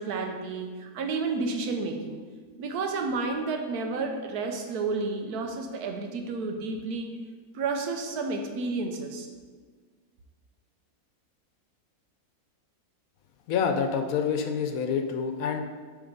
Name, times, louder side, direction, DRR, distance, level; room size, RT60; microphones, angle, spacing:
voice 1, 0.0-2.2 2.6-7.2 7.5-9.3, right 3 dB, 85° right, 4 dB, 1.3 m, -31 dB
voice 2, 13.5-15.6, left 6 dB, 70° left, 6 dB, 1.0 m, -27 dB
7.2 x 3.5 x 5.2 m, 1.5 s
omnidirectional pair, 1.6 m